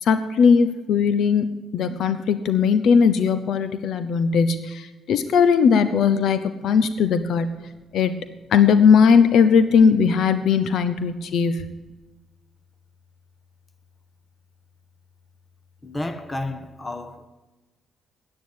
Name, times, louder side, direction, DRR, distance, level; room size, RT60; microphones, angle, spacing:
voice 1, 0.0-1.5 1.7-7.6 7.9-8.1 8.5-11.6, left 6 dB, 70° left, 0.7 m, -18 dB
voice 2, 7.3-7.8 8.3-8.4 10.7-11.5 11.9-12.0 15.8-17.3, left 2 dB, 20° left, 1.3 m, -34 dB
9.6 x 9.4 x 8.5 m
cardioid pair, 90°, 0 cm